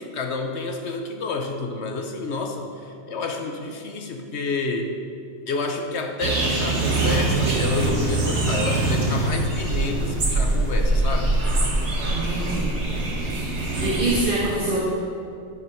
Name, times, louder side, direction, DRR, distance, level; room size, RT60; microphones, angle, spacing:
voice 1, 0.0-4.9 5.5-11.4, left 3 dB, 75° left, 4 dB, 1.3 m, -29 dB
Tropical Dawn Calmer birds, 6.2-14.2, right 2 dB, 80° right, 1.8 m, -23 dB
voice 2, 12.1-12.7 13.8-14.8, right 2 dB, 50° right, -7 dB, 1.8 m, -24 dB
10.5 x 9.8 x 4.9 m, 2.5 s
omnidirectional pair, 1.1 m